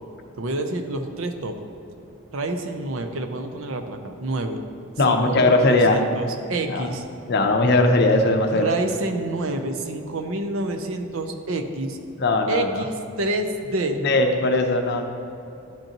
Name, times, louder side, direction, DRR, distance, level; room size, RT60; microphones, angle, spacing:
voice 1, 0.4-1.6 2.3-4.6 5.0-7.0 8.5-12.0 12.5-14.0, right 2 dB, 65° right, 6 dB, 0.6 m, -28 dB
voice 2, 5.0-6.0 6.7-6.8 7.3-8.7 12.2-12.8 14.0-15.1, left 2 dB, 50° left, 4 dB, 0.6 m, -19 dB
11.5 x 5.3 x 2.9 m, 2.8 s
head